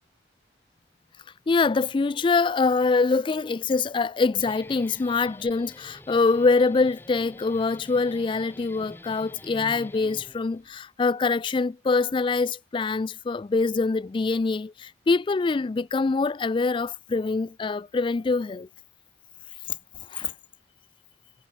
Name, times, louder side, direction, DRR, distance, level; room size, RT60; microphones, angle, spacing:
voice 1, 1.5-18.7 20.1-20.3, left 4 dB, 25° left, 0.3 m, -24 dB
Guitar, 4.2-10.8, left 1 dB, 10° left, 2.4 m, -47 dB
head